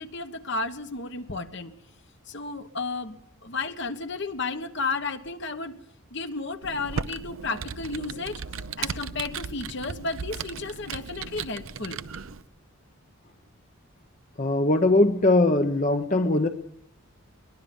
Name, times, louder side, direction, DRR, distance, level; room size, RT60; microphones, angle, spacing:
voice 1, 0.0-1.7 2.3-3.2 3.4-5.7 6.1-8.4 8.8-12.0, left 3 dB, 55° left, 8 dB, 1.4 m, -33 dB
Computer keyboard, 6.6-12.4, right 5 dB, 70° right, 0.8 m, -36 dB
voice 2, 14.4-16.5, left 2 dB, 35° left, 7 dB, 0.9 m, -21 dB
22.5 x 21.0 x 5.4 m, 0.68 s
head